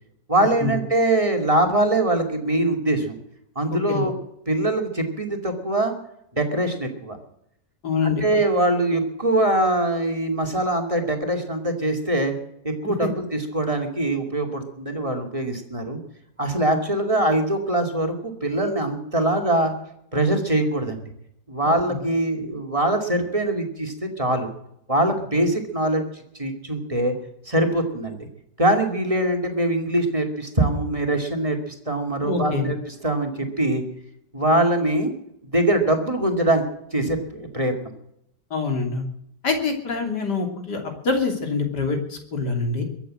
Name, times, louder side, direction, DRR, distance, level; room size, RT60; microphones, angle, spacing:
voice 1, 0.3-3.2 3.6-4.1 4.5-5.9 6.3-7.2 8.0-12.4 12.6-16.0 16.4-19.7 20.1-21.0 21.5-24.5 24.9-26.0 26.4-27.1 27.4-28.3 28.6-32.8 33.0-33.8 34.3-35.1 35.5-36.6 36.9-37.7, right 1 dB, 20° right, 4 dB, 2.5 m, -23 dB
voice 2, 3.7-4.1 7.8-8.2 12.8-13.1 32.2-32.7 38.5-39.1 39.4-42.8, left 4 dB, 65° left, 4 dB, 3.6 m, -25 dB
23.0 x 8.3 x 7.6 m, 0.76 s
omnidirectional pair, 1.9 m